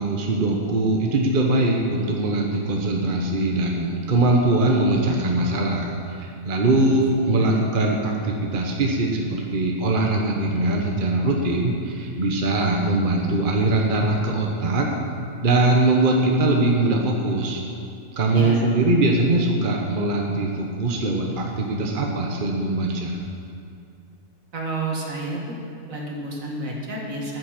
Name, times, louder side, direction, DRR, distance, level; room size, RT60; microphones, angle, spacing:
voice 1, 0.0-14.9 15.4-17.6 18.1-23.2, right 2 dB, 40° right, 0 dB, 1.2 m, -22 dB
voice 2, 18.3-18.6 24.5-25.6 25.9-27.4, right 2 dB, 70° right, -2 dB, 2.2 m, -30 dB
13.5 x 8.0 x 5.9 m, 2.4 s
omnidirectional pair, 1.5 m